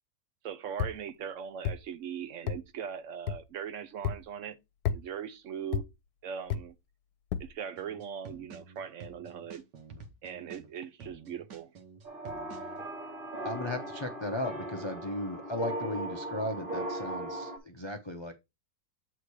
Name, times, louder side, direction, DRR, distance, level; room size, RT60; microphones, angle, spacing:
voice 1, 0.4-4.6 4.9-5.9 6.2-6.7 7.4-9.6 10.2-11.7, right 8 dB, 65° right, 0.8 m, -40 dB
sound 1, 0.8-1.0 1.6-1.8 2.5-2.6 3.3-3.4 4.0-4.2 4.8-5.0 5.7-5.9 6.5-6.6 7.3-7.5, left 8 dB, 70° left, 1.2 m, -31 dB
sound 2, 7.8-12.8, right 5 dB, 90° right, 1.6 m, -49 dB
sound 3, 12.0-17.6, right 1 dB, 35° right, 1.6 m, -38 dB
voice 2, 13.4-18.3, left 1 dB, 40° left, 0.4 m, -36 dB
8.2 x 3.6 x 4.6 m
omnidirectional pair, 1.8 m